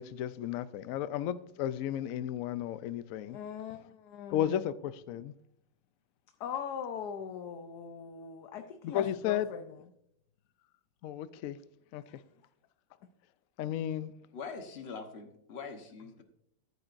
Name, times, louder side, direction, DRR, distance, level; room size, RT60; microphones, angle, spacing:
voice 1, 0.0-3.4 4.3-5.3 8.8-9.5 11.0-11.6 11.9-12.0 13.6-14.1, left 11 dB, 90° left, 0.7 m, -33 dB
voice 2, 3.3-4.6 6.4-9.8 12.1-12.2, left 7 dB, 65° left, 1.2 m, -41 dB
voice 3, 14.3-16.2, left 5 dB, 40° left, 1.1 m, -43 dB
13.5 x 9.7 x 2.6 m
omnidirectional pair, 2.0 m